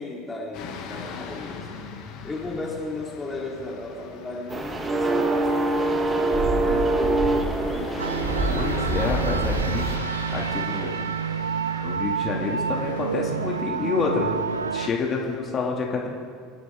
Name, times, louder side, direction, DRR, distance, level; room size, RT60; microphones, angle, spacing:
voice 1, 0.0-1.7 2.2-8.0, left 3 dB, 15° left, -3 dB, 3.4 m, -35 dB
sound 1, 0.5-15.4, left 5 dB, 50° left, 2.7 m, -41 dB
sound 2, 4.5-10.0, right 2 dB, 20° right, 1.8 m, -24 dB
sound 3, 8.0-14.9, right 6 dB, 80° right, 0.3 m, -28 dB
voice 2, 8.5-9.9 10.3-11.0 11.8-14.4 14.7-16.1, left 4 dB, 35° left, -1 dB, 2.6 m, -28 dB
27.0 x 11.0 x 3.8 m, 2.2 s
figure-of-eight pair, 75°, 0 cm